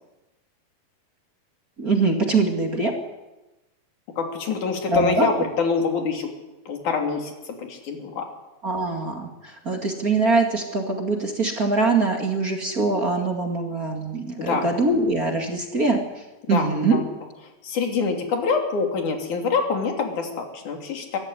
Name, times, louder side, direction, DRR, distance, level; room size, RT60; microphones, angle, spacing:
voice 1, 1.8-2.9 4.9-5.3 8.6-16.0 16.5-17.0, right 3 dB, 30° right, 2 dB, 2.0 m, -23 dB
voice 2, 4.2-6.3 6.7-8.3 14.4-14.7 16.4-17.0 17.6-21.2, left 5 dB, 55° left, 3 dB, 4.3 m, -25 dB
22.5 x 15.0 x 10.0 m, 1.1 s
omnidirectional pair, 4.4 m